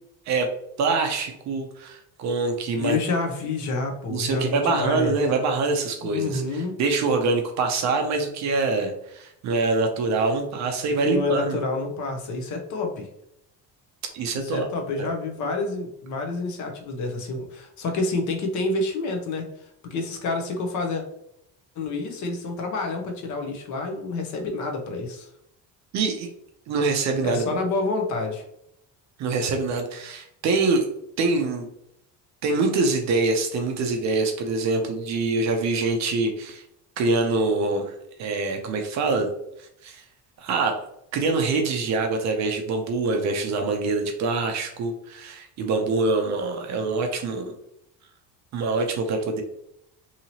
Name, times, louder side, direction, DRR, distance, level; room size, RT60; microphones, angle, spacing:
voice 1, 0.8-3.0 4.1-11.6 14.1-14.7 15.0-15.1 25.9-26.3 26.7-27.6 29.2-30.9 31.2-31.7 32.4-36.6 37.0-39.3 39.6-40.0 40.4-40.8 41.1-47.5 48.5-49.4, right 3 dB, 45° right, 4 dB, 0.4 m, -25 dB
voice 2, 2.8-5.1 6.0-6.7 11.0-13.1 14.3-19.4 19.8-21.0 21.8-25.3 27.2-28.4, left 3 dB, 45° left, 3 dB, 0.6 m, -28 dB
2.8 x 2.7 x 2.8 m, 0.77 s
cardioid pair, 170°, 40 cm